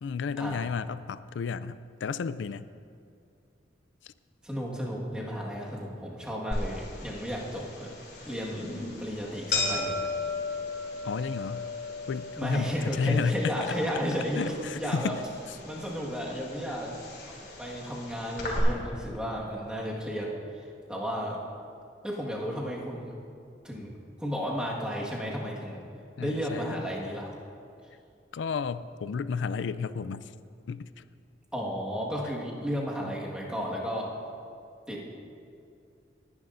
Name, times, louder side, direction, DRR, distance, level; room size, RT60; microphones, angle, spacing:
voice 1, 0.0-2.7 11.0-11.7 12.1-13.8 14.4-15.2 26.2-26.7 28.3-30.2 30.7-31.0, left 5 dB, 80° left, 14 dB, 0.4 m, -32 dB
voice 2, 4.4-7.9 8.3-10.0 12.4-15.1 15.6-17.0 17.6-21.4 22.0-23.1 23.6-23.9 24.2-25.8 26.2-27.3 31.5-34.1 34.9-35.1, equal, 5° right, -4 dB, 1.6 m, -33 dB
sound 1, 6.5-18.6, left 3 dB, 60° left, 3.1 m, -36 dB
20.0 x 11.0 x 2.6 m, 2.4 s
head